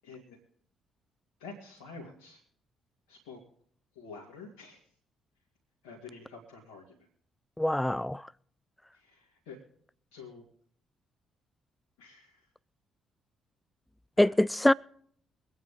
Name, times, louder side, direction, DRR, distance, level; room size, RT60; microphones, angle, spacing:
voice 1, 0.0-0.4 1.4-2.4 3.1-3.4 3.9-4.8 5.8-7.0 8.9-9.6 10.1-10.4 12.0-12.5 14.2-14.3, left 4 dB, 75° left, 2.3 m, -48 dB
voice 2, 7.6-8.3 14.2-14.7, left 1 dB, 10° left, 0.4 m, -24 dB
23.5 x 9.1 x 3.7 m
figure-of-eight pair, 45°, 0 cm